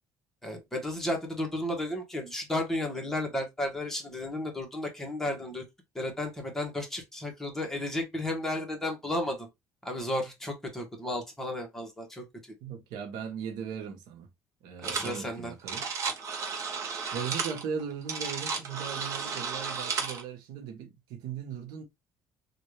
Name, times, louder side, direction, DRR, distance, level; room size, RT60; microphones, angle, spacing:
voice 1, 0.4-5.6 5.9-9.5 9.8-12.2 14.8-15.5, left 1 dB, 5° left, 1.4 m, -33 dB
voice 2, 12.6-14.3 14.6-15.9 17.1-21.8, right 7 dB, 85° right, 1.1 m, -38 dB
sound 1, 14.8-15.2 15.5-20.2, right 5 dB, 45° right, 1.0 m, -33 dB
3.3 x 2.6 x 3.2 m
cardioid pair, 125°, 7 cm